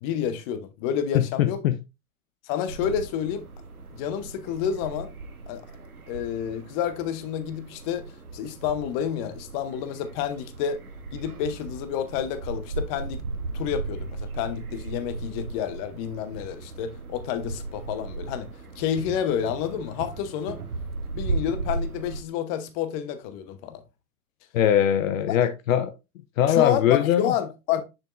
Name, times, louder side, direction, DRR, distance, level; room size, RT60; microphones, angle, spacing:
voice 1, 0.0-1.6 2.4-3.4 3.9-5.1 5.5-5.6 6.1-10.8 11.1-13.2 13.5-18.5 18.8-20.6 21.1-23.8 26.5-27.8, left 9 dB, 40° left, 0.9 m, -29 dB
voice 2, 1.1-1.7 24.5-25.9 26.4-27.3, left 10 dB, 65° left, 0.7 m, -21 dB
sound 1, 2.7-22.2, right 3 dB, 90° right, 1.2 m, -36 dB
6.4 x 6.3 x 2.5 m
hypercardioid pair, 105°, 43 cm